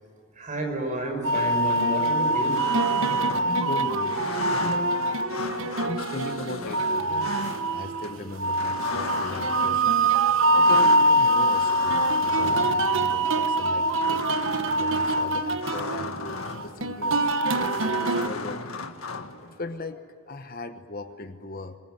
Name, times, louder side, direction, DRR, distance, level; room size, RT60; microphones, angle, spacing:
voice 1, 0.4-2.6, right 1 dB, 35° right, 3 dB, 5.8 m, -30 dB
sound 1, 1.2-18.3, right 2 dB, 65° right, 1.2 m, -24 dB
sound 2, 1.8-19.6, left 3 dB, 80° left, 1.7 m, -36 dB
voice 2, 3.4-4.2 4.5-5.0 5.6-7.4 7.7-10.0 10.5-14.2 14.7-17.3 17.6-19.2 19.4-20.0 20.3-21.8, left 2 dB, 40° left, 9 dB, 1.1 m, -38 dB
25.0 x 21.5 x 9.3 m, 2.6 s
head